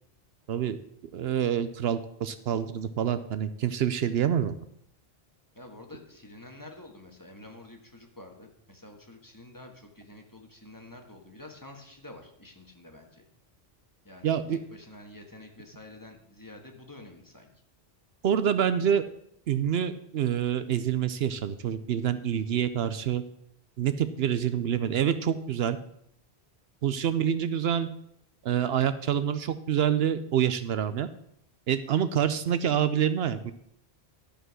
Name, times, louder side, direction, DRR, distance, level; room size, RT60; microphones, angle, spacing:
voice 1, 1.1-4.5 14.2-14.6 18.2-19.0 19.5-23.2 23.8-25.8 26.8-27.9 28.4-31.1 31.7-33.5, right 9 dB, 70° right, 12 dB, 0.8 m, -27 dB
voice 2, 5.5-13.2 14.0-17.5 32.0-32.3, left 2 dB, 20° left, 2 dB, 1.4 m, -48 dB
12.5 x 5.1 x 6.2 m, 0.72 s
omnidirectional pair, 1.1 m